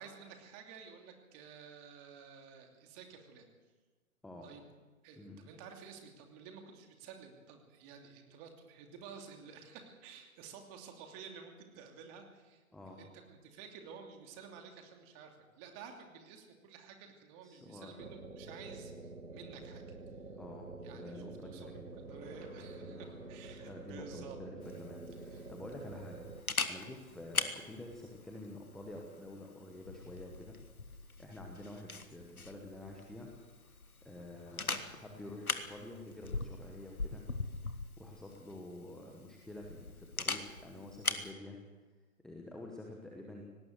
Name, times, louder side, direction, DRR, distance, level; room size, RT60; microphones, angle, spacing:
voice 1, 0.0-3.5 4.4-4.6 5.0-19.8 20.8-24.4 25.3-25.5, right 6 dB, 25° right, 4 dB, 2.7 m, -52 dB
voice 2, 12.7-13.0 17.4-18.0 20.4-21.9 22.8-23.0 23.6-33.3 34.0-37.2 38.0-41.6 42.2-43.4, left 1 dB, ahead, 0 dB, 1.0 m, -49 dB
sound 1, 18.0-26.4, right 3 dB, 90° right, 1.8 m, -48 dB
sound 2, 20.6-20.7 21.2-21.3 21.5-24.5 24.7-24.8 25.1-37.9 38.5-38.6 39.0-39.1, left 3 dB, 15° left, 4.1 m, -66 dB
Camera, 24.6-41.3, left 3 dB, 90° left, 1.6 m, -42 dB
18.5 x 17.5 x 8.0 m, 1.3 s
figure-of-eight pair, 130°, 42 cm